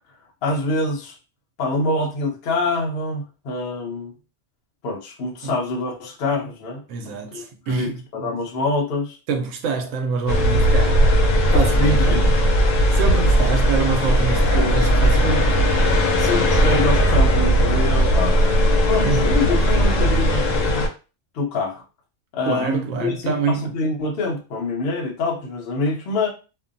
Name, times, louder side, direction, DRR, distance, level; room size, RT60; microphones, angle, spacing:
voice 1, 0.4-1.1 1.6-4.1 4.8-9.2 11.8-12.3 14.5-14.8 15.2-15.4 16.2-18.4 18.9-20.5 21.3-21.8 22.3-26.3, left 2 dB, 60° left, 0.8 m, -25 dB
voice 2, 6.9-8.0 9.3-11.0 11.5-12.4 12.9-15.5 19.0-19.3 22.4-23.7, right 5 dB, 90° right, 1.0 m, -26 dB
sound 1, 10.3-20.9, equal, 85° left, 1.0 m, -17 dB
2.5 x 2.1 x 2.5 m
omnidirectional pair, 1.3 m